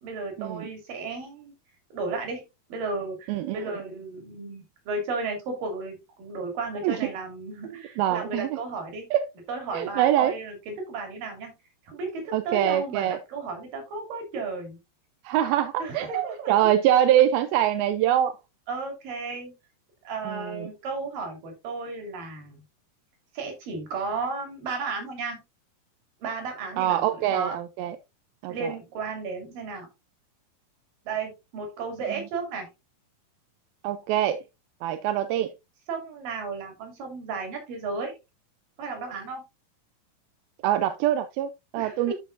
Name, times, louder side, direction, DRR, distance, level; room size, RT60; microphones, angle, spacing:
voice 1, 0.0-1.5 1.9-2.4 2.7-9.0 9.5-11.5 11.9-14.8 15.8-16.5 18.7-19.5 20.0-22.6 23.3-25.4 26.2-27.6 28.5-29.9 31.1-32.7 35.9-38.1 38.8-39.5 41.8-42.1, right 4 dB, 70° right, 4.2 m, -34 dB
voice 2, 3.3-3.6 6.8-7.0 7.7-8.6 9.1-9.2 9.7-10.3 12.3-13.2 15.3-18.3 20.3-20.7 26.8-28.0 28.4-28.7 33.8-34.4 34.8-35.5 40.6-42.1, right 11 dB, 90° right, 2.5 m, -24 dB
12.5 x 5.3 x 2.5 m
omnidirectional pair, 4.2 m